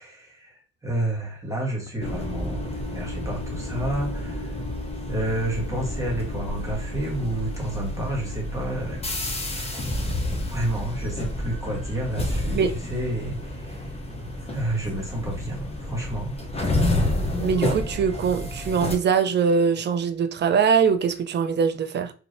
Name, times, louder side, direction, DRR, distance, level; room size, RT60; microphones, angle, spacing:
voice 1, 0.0-4.6 5.1-9.0 9.5-9.8 10.5-14.0 14.4-16.4, right 1 dB, 10° right, 1.2 m, -30 dB
sound 1, 2.0-18.9, left 1 dB, 20° left, 0.7 m, -29 dB
voice 2, 17.4-22.1, right 6 dB, 35° right, 0.4 m, -22 dB
3.1 x 2.6 x 2.6 m
cardioid pair, 90°, 30 cm